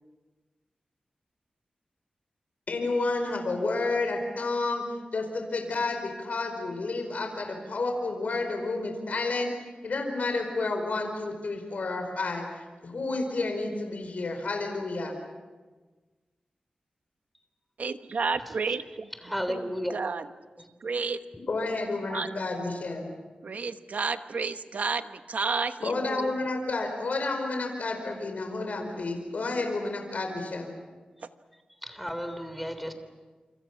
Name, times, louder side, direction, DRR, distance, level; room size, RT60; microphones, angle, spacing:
voice 1, 2.7-12.5 12.8-15.1 21.5-23.1 25.8-30.7, left 3 dB, 70° left, 3 dB, 4.7 m, -30 dB
voice 2, 17.8-20.3 20.8-21.2 22.0-22.3 23.4-26.4, right 4 dB, 70° right, 9 dB, 1.2 m, -31 dB
voice 3, 19.3-20.0 31.9-32.9, equal, ahead, 8 dB, 3.4 m, -32 dB
28.0 x 26.0 x 6.0 m, 1.3 s
wide cardioid pair, 90°, 3 cm